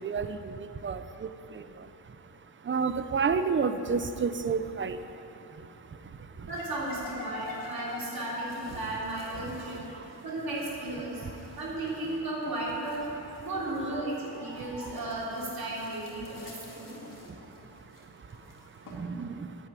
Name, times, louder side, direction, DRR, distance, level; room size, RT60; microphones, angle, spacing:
voice 1, 0.0-6.5 9.3-10.3 11.0-11.6 13.1-13.5 14.4-14.9 16.5-19.7, right 5 dB, 30° right, 10 dB, 0.5 m, -34 dB
voice 2, 6.4-9.8 10.2-11.3 11.5-13.1 13.4-17.0, right 1 dB, 60° right, -5 dB, 3.4 m, -34 dB
sound 1, 6.5-19.0, left 2 dB, 50° left, 2.1 m, -48 dB
11.0 x 8.9 x 8.3 m, 2.9 s
wide cardioid pair, 160°, 41 cm